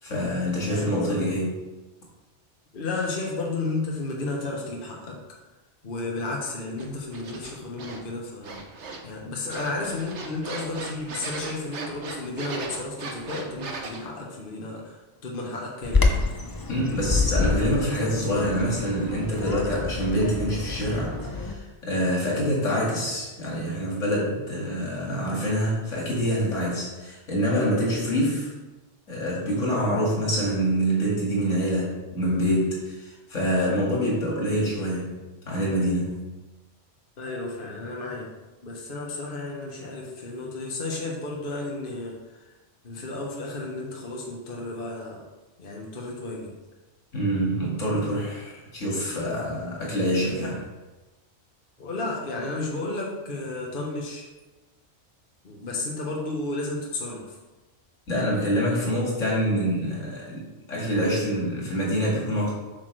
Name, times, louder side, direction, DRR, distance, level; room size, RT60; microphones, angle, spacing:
voice 1, 0.0-1.5 16.7-28.5 29.1-36.3 47.1-50.6 58.1-62.5, equal, 85° left, -4 dB, 2.4 m, -26 dB
voice 2, 0.7-1.3 2.7-5.2 5.8-8.6 9.0-16.2 37.2-38.3 38.6-42.5 42.8-45.3 45.6-46.5 51.8-54.3 55.4-57.4, left 2 dB, 45° left, -2 dB, 1.3 m, -33 dB
sound 1, 6.8-8.0 8.4-9.2 9.5-14.0, right 3 dB, 65° right, 1.2 m, -38 dB
Bird vocalization bird call bird song, 15.8-21.5, left 3 dB, 25° left, 0.5 m, -27 dB
8.1 x 6.2 x 3.2 m, 1.2 s
omnidirectional pair, 1.3 m